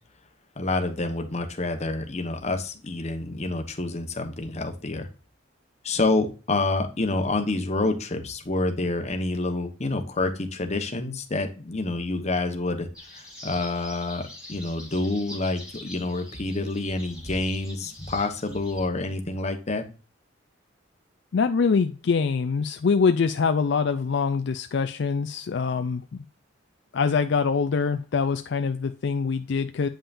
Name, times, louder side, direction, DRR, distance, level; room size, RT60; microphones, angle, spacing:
voice 1, 0.6-5.1 5.8-12.9 13.1-19.8, left 2 dB, 35° left, 5 dB, 1.1 m, -28 dB
sound 1, 12.9-18.9, equal, 5° right, 2.7 m, -43 dB
voice 2, 21.3-26.2 26.9-29.9, left 5 dB, 60° left, 8 dB, 0.4 m, -24 dB
8.7 x 5.6 x 2.5 m, 0.34 s
head